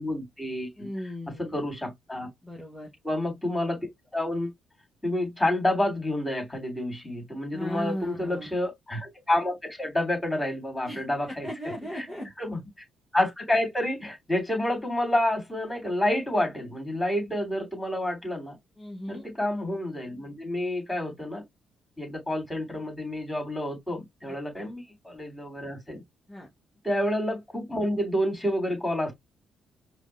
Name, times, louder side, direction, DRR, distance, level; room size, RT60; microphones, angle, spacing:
voice 1, 0.0-0.9 1.4-2.3 3.0-3.8 4.1-4.5 5.0-11.5 11.9-12.1 12.4-12.6 13.1-18.6 19.1-21.4 22.0-26.0 26.8-29.1, left 1 dB, 10° left, 3.0 m, -29 dB
voice 2, 0.8-1.6 2.4-2.9 7.5-8.5 10.8-12.3 18.8-19.2 24.3-24.7 26.3-26.5, equal, 10° right, 1.6 m, -37 dB
5.0 x 2.3 x 3.3 m
cardioid pair, 90°, 0 cm